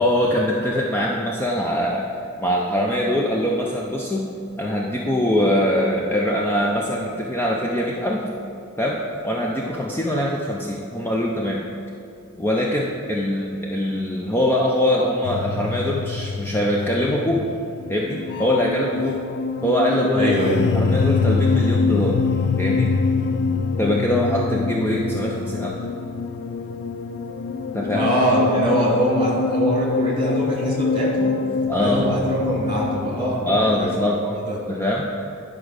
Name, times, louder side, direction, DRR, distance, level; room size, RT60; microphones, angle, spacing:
voice 1, 0.0-2.1 2.4-4.3 4.6-8.3 8.8-11.6 12.4-17.5 17.9-19.2 19.6-20.3 20.7-22.2 22.6-22.9 23.8-25.8 27.7-28.1 31.7-32.2 33.4-34.2 34.7-35.1, left 1 dB, 10° left, -2 dB, 0.6 m, -22 dB
sound 1, 15.2-34.1, left 4 dB, 55° left, 0.4 m, -25 dB
voice 2, 20.1-20.6 27.9-31.4 31.8-33.4 33.7-34.6, equal, 25° right, -4 dB, 2.5 m, -23 dB
10.5 x 4.9 x 6.5 m, 2.6 s
head